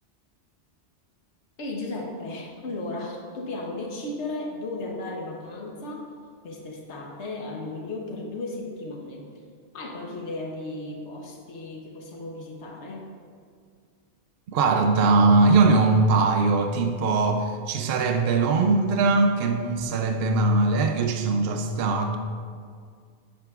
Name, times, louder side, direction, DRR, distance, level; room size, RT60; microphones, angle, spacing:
voice 1, 1.6-6.1 6.4-9.3 9.7-13.1, left 2 dB, 85° left, 0 dB, 1.3 m, -35 dB
voice 2, 14.5-22.2, right 3 dB, 65° right, 5 dB, 0.8 m, -21 dB
10.5 x 8.6 x 2.4 m, 2.1 s
omnidirectional pair, 1.1 m